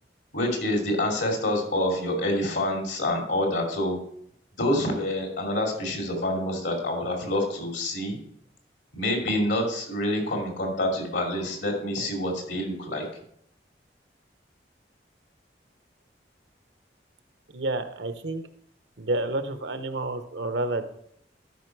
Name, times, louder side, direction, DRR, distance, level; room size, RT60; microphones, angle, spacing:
voice 1, 0.3-4.0 4.6-8.2 8.9-13.0, left 1 dB, 80° left, 1 dB, 2.6 m, -27 dB
voice 2, 17.5-18.4 19.0-20.9, right 2 dB, 80° right, 10 dB, 0.8 m, -29 dB
12.5 x 5.3 x 4.6 m, 0.70 s
head